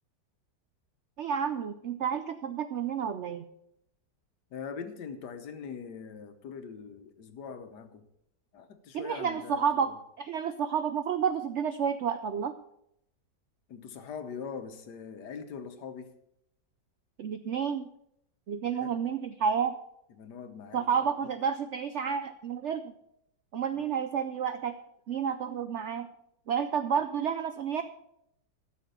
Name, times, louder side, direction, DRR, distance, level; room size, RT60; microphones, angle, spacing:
voice 1, 1.2-3.5 8.9-9.9 10.2-12.5 17.2-17.9 18.5-19.7 20.7-22.9 23.5-24.8 25.1-26.1 26.5-27.8, right 7 dB, 75° right, 10 dB, 0.6 m, -30 dB
voice 2, 4.5-8.1 8.5-10.0 13.7-16.1 18.7-19.0 20.2-21.1 23.8-23.9, left 6 dB, 70° left, 8 dB, 1.6 m, -42 dB
13.0 x 6.7 x 6.6 m, 0.78 s
omnidirectional pair, 1.9 m